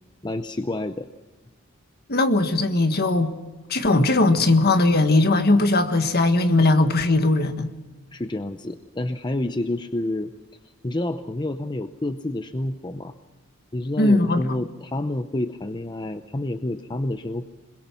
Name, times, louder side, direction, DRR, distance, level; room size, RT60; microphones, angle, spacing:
voice 1, 0.2-1.1 8.1-10.3 10.6-13.1 13.7-17.5, left 1 dB, 20° left, 0.7 m, -29 dB
voice 2, 2.1-3.3 3.7-7.7 14.0-14.4, left 2 dB, 45° left, 1.6 m, -19 dB
27.0 x 21.5 x 6.0 m
head